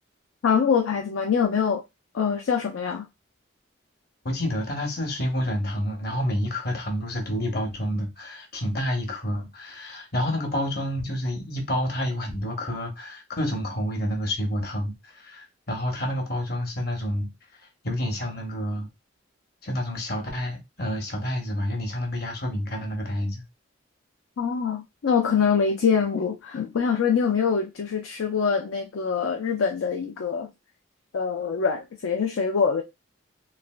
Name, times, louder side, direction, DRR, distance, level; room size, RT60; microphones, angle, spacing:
voice 1, 0.4-1.8 2.1-3.1 24.4-30.5 31.1-32.8, left 6 dB, 90° left, 0.4 m, -24 dB
voice 2, 4.2-17.3 17.8-18.9 19.6-23.4, equal, 50° left, 0.8 m, -29 dB
3.2 x 2.4 x 2.2 m
head